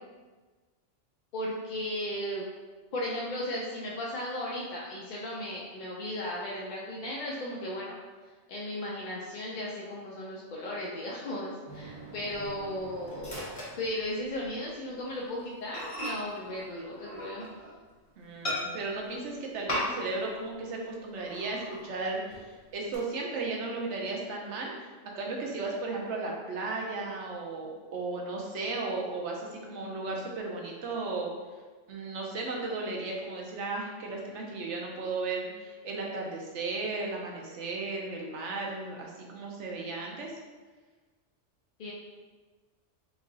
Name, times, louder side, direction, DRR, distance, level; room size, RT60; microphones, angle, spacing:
voice 1, 1.3-2.4 2.9-8.0 8.5-13.4 13.8-17.5 41.8-41.9, left 1 dB, 55° left, -5 dB, 0.5 m, -36 dB
Microwave oven, 11.7-14.5 14.9-15.1 15.4-15.5 15.7-17.8 18.4-19.1 19.7-20.3 20.5-20.6 21.1-21.9 22.3-23.0, equal, 30° left, 0.9 m, -38 dB
voice 2, 18.2-24.9 25.1-31.3 31.9-40.3, right 3 dB, 75° right, 0 dB, 0.9 m, -35 dB
3.0 x 2.5 x 3.8 m, 1.3 s
omnidirectional pair, 1.2 m